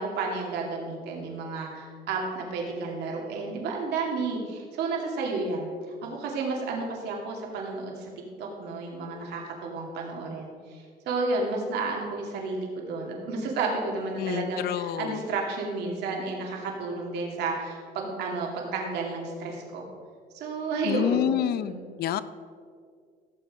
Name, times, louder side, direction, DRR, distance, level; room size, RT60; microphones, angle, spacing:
voice 1, 0.0-5.7 6.0-8.1 8.4-19.9 20.3-21.8, right 3 dB, 80° right, 0 dB, 2.6 m, -31 dB
voice 2, 14.2-15.2 20.8-22.2, left 11 dB, 70° left, 15 dB, 0.6 m, -28 dB
16.5 x 7.4 x 5.0 m, 2.1 s
cardioid pair, 110°, 17 cm